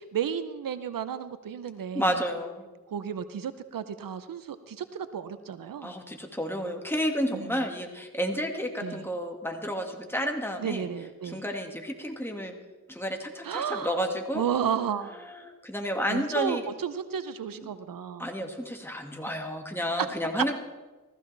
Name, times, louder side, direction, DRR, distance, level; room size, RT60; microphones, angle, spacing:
voice 1, 0.0-2.2 2.9-5.9 7.3-7.6 8.8-9.1 10.6-11.4 13.4-14.0 14.3-15.2 16.1-18.3, right 8 dB, 80° right, 12 dB, 0.7 m, -33 dB
voice 2, 1.9-2.6 5.8-10.8 11.2-12.5 12.9-14.4 15.2-16.6 18.2-20.5, equal, 5° left, 2 dB, 1.9 m, -31 dB
15.0 x 15.0 x 3.4 m, 1.2 s
cardioid pair, 60°, 33 cm